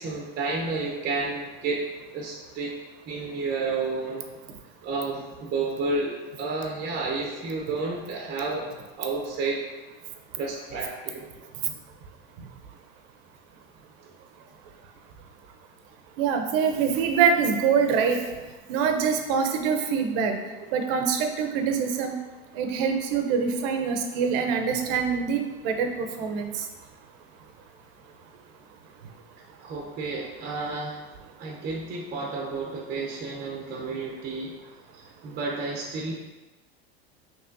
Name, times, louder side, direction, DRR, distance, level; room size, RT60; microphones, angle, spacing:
voice 1, 0.0-1.9 2.1-2.8 3.0-4.2 4.8-8.7 9.0-9.6 10.4-11.2 24.9-25.0 29.6-31.0 31.4-34.5 35.2-36.1, right 3 dB, 35° right, -2 dB, 0.7 m, -31 dB
voice 2, 16.2-18.2 18.7-20.4 20.7-22.2 22.6-26.6, right 6 dB, 65° right, 5 dB, 0.7 m, -24 dB
5.4 x 3.0 x 2.6 m, 1.2 s
supercardioid pair, 110°, 29 cm